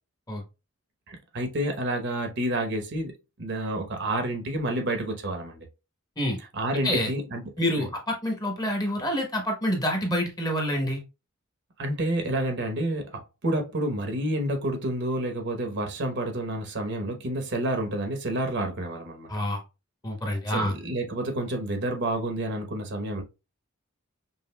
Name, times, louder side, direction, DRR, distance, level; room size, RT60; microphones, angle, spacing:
voice 1, 1.1-3.1 3.4-5.7 6.5-7.5 7.8-7.9 11.8-19.3 20.5-23.2, right 1 dB, 50° right, 0.9 m, -29 dB
voice 2, 7.6-11.0 19.3-19.6 20.0-20.7, equal, 15° left, 0.9 m, -27 dB
5.5 x 2.6 x 2.2 m
head